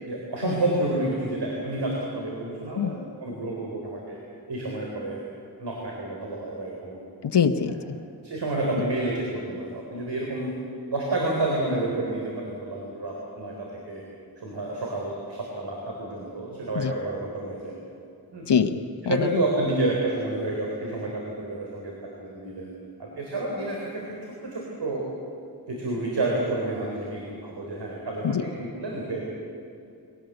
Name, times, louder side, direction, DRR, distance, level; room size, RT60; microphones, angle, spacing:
voice 1, 0.1-3.0 3.2-4.2 4.5-5.2 5.6-6.9 7.7-7.8 8.2-10.5 10.9-14.0 14.4-17.7 18.3-18.5 19.0-21.9 22.2-22.7 23.0-25.1 25.7-29.2, right 2 dB, 90° right, -2 dB, 4.0 m, -29 dB
voice 2, 7.2-7.8 16.7-16.9 18.5-19.4 28.2-28.4, left 7 dB, 90° left, 7 dB, 1.1 m, -24 dB
23.5 x 18.5 x 8.0 m, 2.6 s
wide cardioid pair, 80°, 40 cm